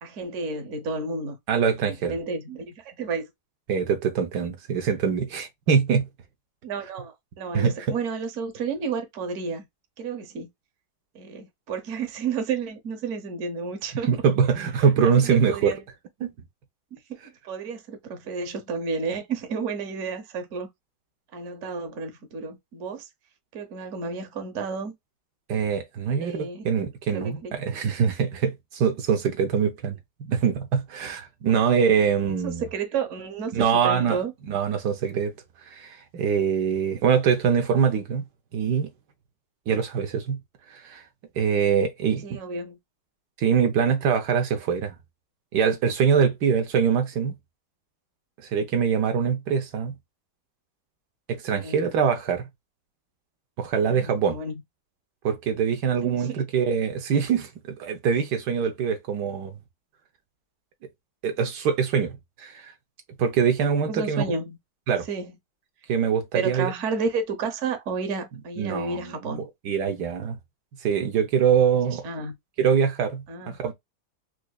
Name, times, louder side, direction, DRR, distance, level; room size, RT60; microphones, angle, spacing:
voice 1, 0.0-1.4 1.9-3.3 6.6-9.6 10.0-10.5 11.1-14.1 15.0-15.8 16.9-20.7 21.3-23.1 23.5-24.9 26.2-26.7 27.1-27.5 31.5-31.6 32.4-34.3 42.2-42.8 51.6-51.8 53.9-54.5 56.0-56.4 63.9-64.6 65.1-65.3 66.3-69.4 72.0-72.3 73.3-73.6, right 5 dB, 55° right, 1.1 m, -31 dB
voice 2, 1.5-2.1 3.7-6.1 7.5-7.9 14.1-15.7 16.2-16.3 25.5-32.6 33.5-34.2 34.5-35.3 35.6-38.2 38.5-38.9 39.7-40.4 40.7-41.0 41.4-42.4 43.4-44.9 45.5-47.4 48.5-49.9 51.3-52.5 53.6-54.4 55.2-59.6 61.2-62.7 63.2-64.2 64.9-65.1 65.9-66.7 68.6-70.4 70.8-72.1 72.6-73.7, right 7 dB, 75° right, 1.3 m, -24 dB
4.6 x 2.5 x 2.3 m
omnidirectional pair, 1.8 m